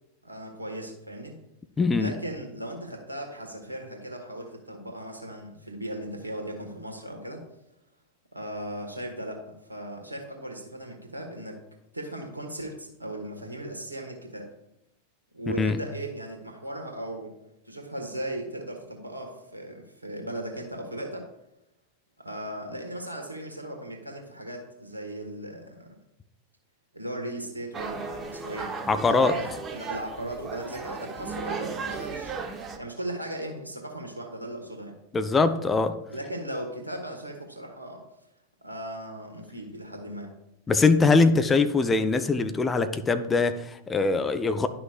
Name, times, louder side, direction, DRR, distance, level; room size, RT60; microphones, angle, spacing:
voice 1, 0.2-1.4 2.0-7.4 8.3-11.6 11.9-14.5 15.3-17.3 17.6-21.2 22.2-25.9 26.9-28.7 29.0-34.9 36.1-38.0 38.6-40.3, right 1 dB, 85° right, 1.4 m, -37 dB
voice 2, 1.8-2.1 15.6-15.8 28.9-29.4 35.1-36.0 40.7-44.7, left 4 dB, 15° left, 0.5 m, -22 dB
sound 1, 27.7-32.8, right 4 dB, 20° right, 0.9 m, -35 dB
11.0 x 5.9 x 2.5 m
figure-of-eight pair, 90°, 0 cm